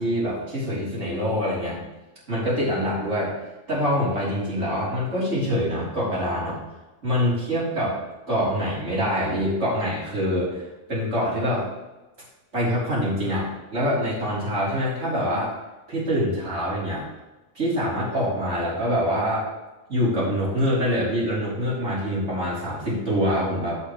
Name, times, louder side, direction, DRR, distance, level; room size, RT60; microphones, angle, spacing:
voice 1, 0.0-1.8 2.3-3.3 3.7-6.6 7.0-8.0 8.3-10.6 10.9-11.7 12.5-15.5 15.9-17.1 17.6-19.5 19.9-23.8, equal, 70° right, -7 dB, 3.7 m, -25 dB
14.0 x 5.7 x 3.2 m, 1.1 s
omnidirectional pair, 1.3 m